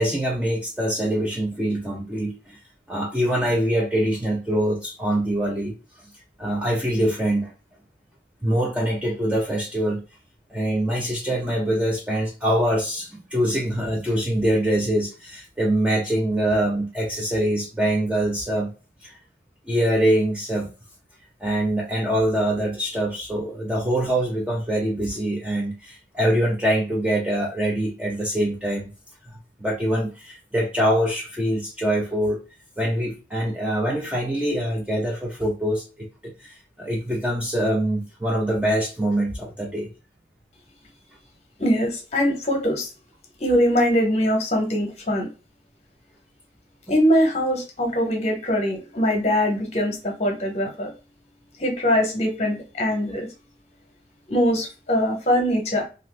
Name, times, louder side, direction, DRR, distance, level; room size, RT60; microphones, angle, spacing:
voice 1, 0.0-2.6 2.9-5.7 6.4-7.5 8.4-10.0 10.5-18.7 19.0-19.1 19.7-20.7 21.4-28.9 29.3-32.4 32.8-39.9, right 1 dB, 5° right, -2 dB, 0.4 m, -24 dB
voice 2, 41.6-42.9 43.4-45.3 46.9-50.9 51.6-53.3 54.3-55.9, equal, 35° left, 2 dB, 0.8 m, -22 dB
2.6 x 2.4 x 3.2 m, 0.32 s
head